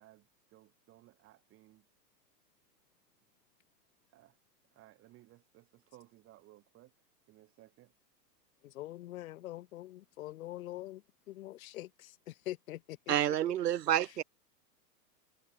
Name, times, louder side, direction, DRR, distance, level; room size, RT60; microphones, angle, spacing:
voice 1, 0.0-1.9 4.1-4.4 4.7-6.9 7.3-7.9, right 16 dB, 25° right, 7.8 m, -60 dB
voice 2, 8.6-13.4, left 15 dB, 55° left, 5.8 m, -44 dB
voice 3, 13.1-14.2, right 11 dB, 70° right, 3.9 m, -29 dB
hypercardioid pair, 155°, 50 cm